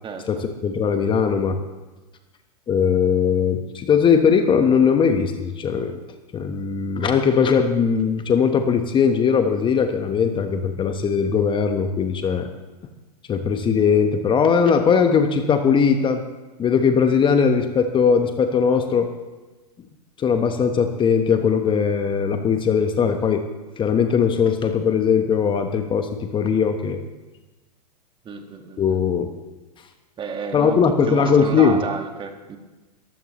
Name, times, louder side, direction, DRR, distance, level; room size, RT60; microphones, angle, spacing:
voice 1, 0.3-1.6 2.7-6.0 6.3-12.5 13.3-16.2 16.6-19.1 20.2-23.4 23.8-27.0 28.8-29.3 30.5-31.8, left 6 dB, 25° left, 6 dB, 1.2 m, -19 dB
voice 2, 28.3-29.0 30.2-32.6, right 5 dB, 25° right, 5 dB, 1.8 m, -31 dB
22.0 x 15.0 x 3.1 m, 1.2 s
hypercardioid pair, 105°, 21 cm